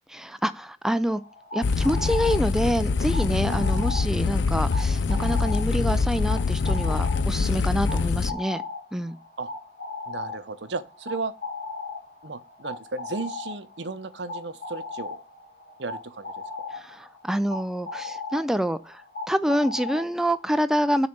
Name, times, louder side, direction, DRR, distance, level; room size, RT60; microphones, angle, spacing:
voice 1, 0.1-1.2 1.5-8.6 8.9-9.2 16.7-21.1, equal, 5° right, 0.4 m, -27 dB
sound 1, 1.1-20.5, left 3 dB, 50° left, 2.5 m, -38 dB
sound 2, 1.6-8.3, left 4 dB, 75° left, 0.4 m, -24 dB
voice 2, 10.1-11.3 12.2-15.2 15.8-16.3, right 3 dB, 75° right, 0.8 m, -34 dB
6.9 x 4.1 x 6.6 m
head